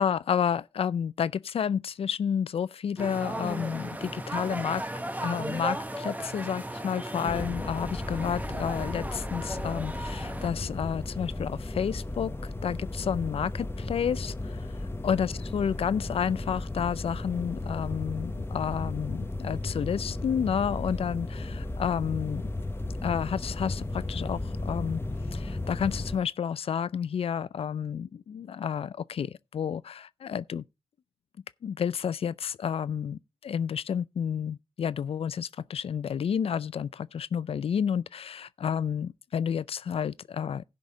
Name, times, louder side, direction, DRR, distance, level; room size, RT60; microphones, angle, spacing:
voice 1, 0.0-4.8 5.2-14.6 15.0-22.5 23.0-25.0 25.3-30.6 31.6-40.6, left 7 dB, 80° left, 0.4 m, -30 dB
sound 1, 3.0-10.5, right 1 dB, 15° right, 1.0 m, -36 dB
sound 2, 7.3-26.2, left 2 dB, 25° left, 0.8 m, -35 dB
16.0 x 5.4 x 3.9 m
cardioid pair, 50°, 10 cm